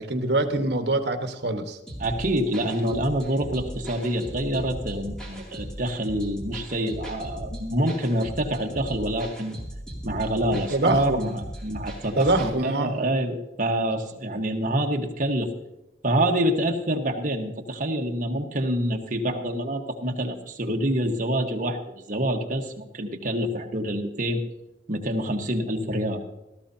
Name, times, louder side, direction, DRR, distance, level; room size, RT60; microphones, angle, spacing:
voice 1, 0.0-1.8 10.2-11.3 12.2-13.0, right 2 dB, 70° right, 6 dB, 1.3 m, -25 dB
sound 1, 1.9-12.5, right 1 dB, 5° left, 2.6 m, -38 dB
voice 2, 2.0-9.5 10.0-15.5 16.0-24.4 24.9-26.2, right 1 dB, 45° right, 3 dB, 1.3 m, -26 dB
16.5 x 14.0 x 2.8 m, 0.98 s
head